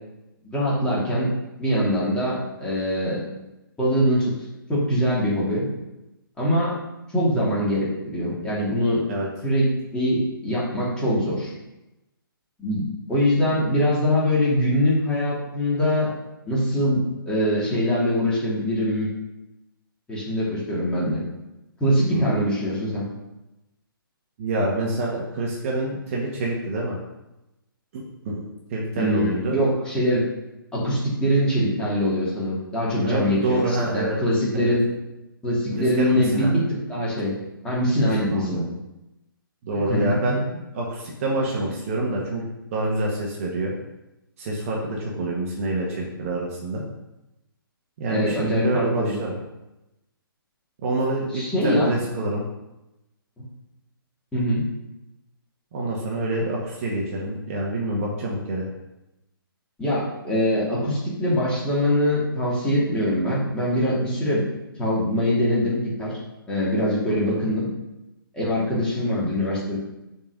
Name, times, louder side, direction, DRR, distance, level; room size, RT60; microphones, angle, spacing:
voice 1, 0.4-1.3 1.6-3.2 3.8-4.3 4.7-5.7 6.4-6.8 7.1-9.0 9.4-11.5 12.6-16.1 16.4-19.1 20.1-21.2 21.8-23.1 29.0-30.2 30.7-34.9 35.4-36.6 36.9-37.3 37.6-38.7 39.9-40.1 48.1-49.2 51.3-51.9 54.3-54.7 59.8-64.4 64.8-66.1 66.5-67.7 68.3-69.8, equal, 5° left, -8 dB, 2.8 m, -23 dB
voice 2, 24.4-27.0 27.9-29.6 33.0-34.2 34.6-34.7 35.7-36.5 38.0-38.6 39.6-40.4 40.7-42.4 42.7-43.7 44.4-46.8 48.0-49.3 50.8-52.4 55.7-58.6 67.1-67.4, right 2 dB, 35° right, -2 dB, 1.6 m, -27 dB
7.0 x 4.5 x 6.6 m, 0.96 s
figure-of-eight pair, 130°, 12 cm